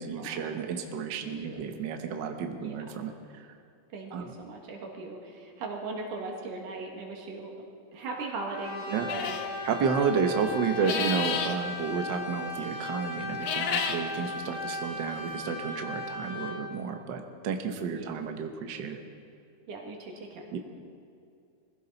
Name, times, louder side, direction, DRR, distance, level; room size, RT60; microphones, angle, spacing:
voice 1, 0.0-3.5 4.1-4.3 8.9-9.1 9.6-19.0 20.5-20.6, right 6 dB, 65° right, 5 dB, 1.1 m, -31 dB
voice 2, 1.2-1.6 2.6-2.8 3.9-7.5 7.9-9.4 17.9-18.1 19.7-20.5, right 3 dB, 85° right, 0 dB, 3.5 m, -39 dB
Brass instrument, 8.5-16.6, left 1 dB, 15° left, 3.6 m, -37 dB
sound 1, 9.1-9.5 10.7-11.6 13.3-14.0, left 7 dB, 65° left, 1.8 m, -31 dB
21.0 x 15.5 x 4.0 m, 2.5 s
omnidirectional pair, 3.6 m